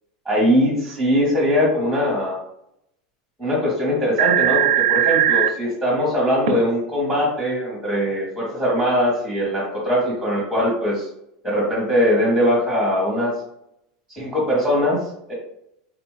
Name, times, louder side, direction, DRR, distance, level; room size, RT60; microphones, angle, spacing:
voice 1, 0.2-2.4 3.4-11.1 11.4-13.3 14.1-15.3, equal, ahead, -5 dB, 1.0 m, -21 dB
sound 1, 3.8-3.9 4.2-5.5 6.5-6.6, right 11 dB, 90° right, 0.4 m, -18 dB
3.8 x 2.5 x 3.1 m, 0.78 s
supercardioid pair, 160°, 4 cm